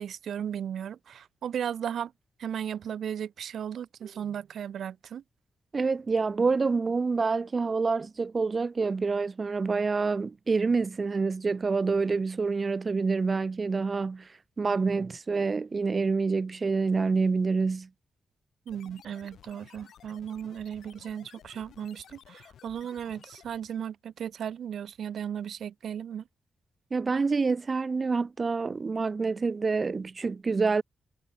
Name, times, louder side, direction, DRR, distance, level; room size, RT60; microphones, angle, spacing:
voice 1, 0.0-2.1 2.4-5.2 18.7-26.2, right 9 dB, 70° right, 1.7 m, -36 dB
voice 2, 5.7-14.3 14.6-17.9 26.9-30.8, right 4 dB, 30° right, 0.3 m, -27 dB
sound 1, 18.7-23.8, left 9 dB, 75° left, 4.3 m, -54 dB
wide cardioid pair, 140°, 0 cm